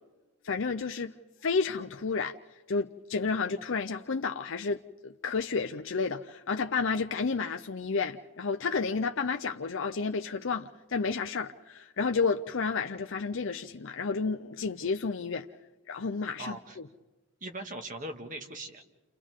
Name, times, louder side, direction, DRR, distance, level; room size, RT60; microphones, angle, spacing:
voice 1, 0.4-1.1 1.4-2.4 2.7-15.5 15.9-16.6, left 4 dB, 60° left, 0.6 m, -31 dB
voice 2, 16.4-16.8 17.4-18.8, right 1 dB, 40° right, 1.8 m, -40 dB
30.0 x 29.0 x 3.7 m
head